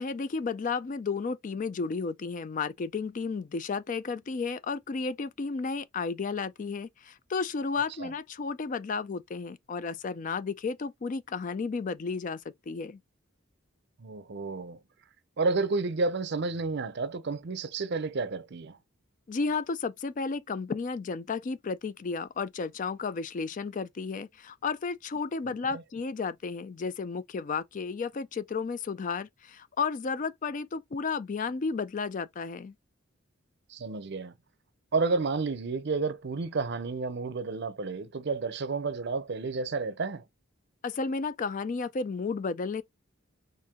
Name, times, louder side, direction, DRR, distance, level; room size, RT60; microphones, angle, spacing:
voice 1, 0.0-12.4 12.7-13.0 19.3-32.7 40.8-42.8, left 4 dB, 40° left, 0.4 m, -33 dB
voice 2, 14.0-14.8 15.4-18.8 25.7-25.8 33.7-34.3 34.9-40.2, right 4 dB, 55° right, 0.6 m, -31 dB
4.5 x 2.6 x 3.6 m
head